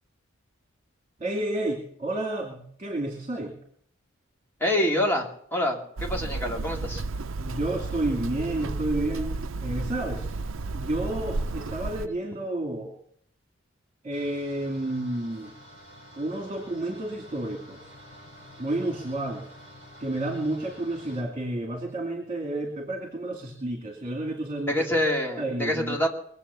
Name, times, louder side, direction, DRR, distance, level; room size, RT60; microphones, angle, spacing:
voice 1, 1.2-3.5 7.4-10.3 10.7-12.9 14.0-15.5 16.2-17.8 18.6-19.4 20.0-24.8 25.4-26.0, right 1 dB, 30° right, 1 dB, 2.5 m, -30 dB
voice 2, 4.6-7.0 24.7-26.1, left 1 dB, 10° left, 0 dB, 2.4 m, -26 dB
Hammer, 6.0-12.1, right 3 dB, 85° right, 0.6 m, -32 dB
sound 1, 14.1-21.2, equal, 35° left, 7.0 m, -49 dB
22.5 x 7.9 x 6.9 m, 0.66 s
head